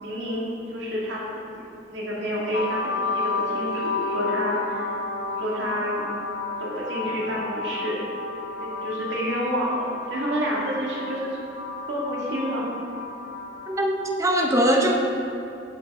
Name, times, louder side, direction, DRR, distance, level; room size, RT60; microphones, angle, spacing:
voice 1, 0.0-1.6 1.9-2.8 3.1-4.9 5.4-6.1 6.6-8.0 8.6-11.4 11.9-12.7, equal, 80° right, -5 dB, 2.0 m, -29 dB
sound 1, 2.5-14.1, left 3 dB, 70° left, 0.8 m, -31 dB
voice 2, 13.7-15.0, right 1 dB, 15° right, 1 dB, 0.8 m, -21 dB
11.0 x 5.6 x 3.6 m, 2.8 s
head